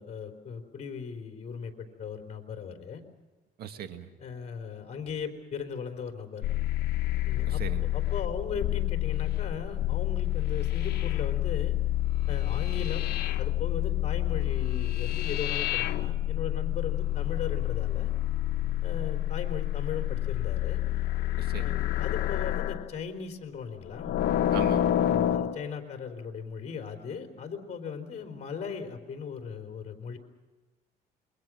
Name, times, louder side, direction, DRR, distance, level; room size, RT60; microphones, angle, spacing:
voice 1, 0.0-3.0 4.2-6.5 7.3-7.6 7.9-11.8 12.3-18.1 18.8-20.8 21.6-24.2 25.0-30.2, left 6 dB, 40° left, 4 dB, 3.9 m, -38 dB
voice 2, 3.6-4.1 7.5-7.9 21.4-21.8 24.5-25.0, right 9 dB, 65° right, 8 dB, 1.9 m, -39 dB
sound 1, 6.4-22.9 23.9-25.6, left 13 dB, 75° left, 1.0 m, -28 dB
28.0 x 23.0 x 6.3 m, 1.2 s
cardioid pair, 110°, 17 cm